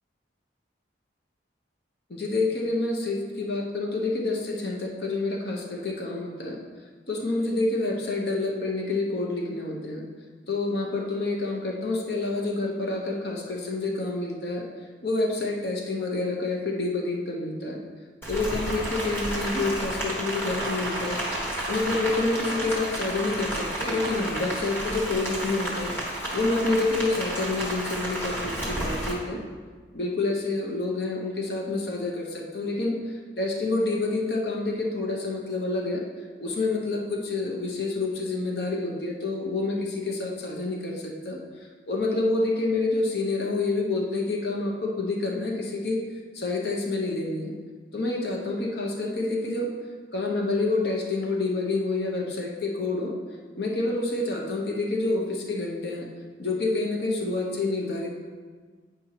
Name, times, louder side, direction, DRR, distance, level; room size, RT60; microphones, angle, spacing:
voice 1, 2.1-6.6 7.1-10.0 10.5-14.6 15.0-17.8 18.3-21.2 21.7-29.4 29.9-36.0 36.4-41.4 41.9-46.0 46.3-47.5 47.9-49.7 50.1-53.1 53.6-56.1 56.4-58.2, left 2 dB, 65° left, 0 dB, 0.9 m, -28 dB
Rain, 18.2-29.1, right 1 dB, 10° left, 1.4 m, -31 dB
9.2 x 5.2 x 2.9 m, 1.5 s
head